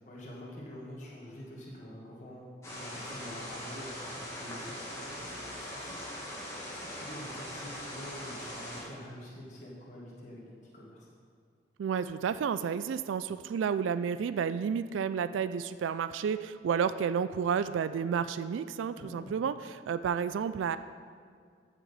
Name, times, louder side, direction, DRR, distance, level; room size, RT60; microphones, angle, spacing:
voice 1, 0.0-11.1 19.0-19.4, equal, 40° left, -5 dB, 1.6 m, -47 dB
sound 1, 2.6-8.8, left 1 dB, 15° left, 1.8 m, -41 dB
voice 2, 11.8-20.8, right 7 dB, 90° right, 13 dB, 0.3 m, -31 dB
14.5 x 6.0 x 4.1 m, 2.1 s
head